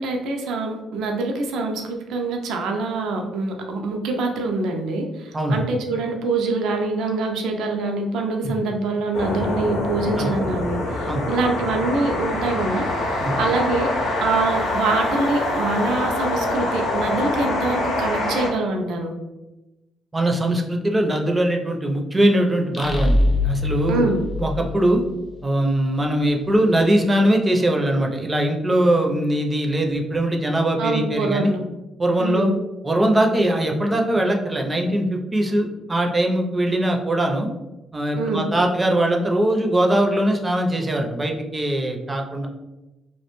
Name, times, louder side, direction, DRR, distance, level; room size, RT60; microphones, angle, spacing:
voice 1, 0.0-13.9 14.2-19.1 23.9-24.2 30.8-31.6 32.2-32.6 38.2-38.5, right 3 dB, 80° right, 3 dB, 0.4 m, -25 dB
sound 1, 9.1-18.5, left 1 dB, 85° left, 0.7 m, -25 dB
voice 2, 20.1-25.0 25.4-31.5 32.0-32.5 32.8-37.5 37.9-42.5, right 1 dB, 20° right, 2 dB, 0.4 m, -21 dB
sound 2, 22.7-25.4, left 2 dB, 30° left, 0.5 m, -23 dB
2.3 x 2.1 x 2.9 m, 1.0 s
cardioid pair, 90°, 0 cm